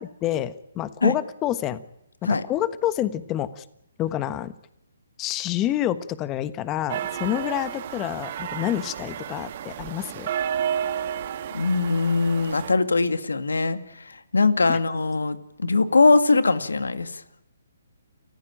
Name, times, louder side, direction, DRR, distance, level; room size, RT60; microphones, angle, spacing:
voice 1, 0.0-1.8 2.3-3.6 4.0-4.5 5.2-10.3 14.7-14.8, left 12 dB, 20° left, 14 dB, 1.3 m, -28 dB
sound 1, 6.9-12.7, right 9 dB, 45° right, 1.8 m, -31 dB
voice 2, 11.5-17.2, left 3 dB, 80° left, 11 dB, 2.2 m, -21 dB
29.5 x 15.0 x 8.9 m, 0.81 s
figure-of-eight pair, 140°, 0 cm